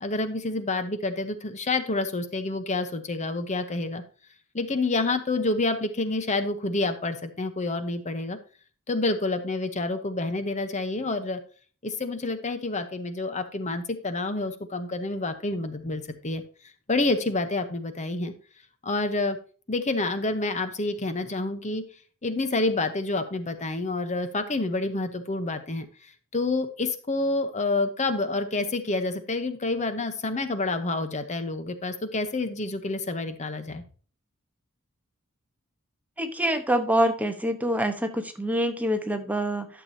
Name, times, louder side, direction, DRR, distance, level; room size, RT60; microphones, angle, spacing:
voice 1, 0.0-4.0 4.5-8.4 8.9-11.4 11.8-16.4 16.9-18.3 18.8-19.4 19.7-21.8 22.2-33.8, left 2 dB, 35° left, 9 dB, 0.9 m, -28 dB
voice 2, 36.2-39.7, equal, 5° right, 6 dB, 1.0 m, -25 dB
12.0 x 6.8 x 2.7 m, 0.38 s
head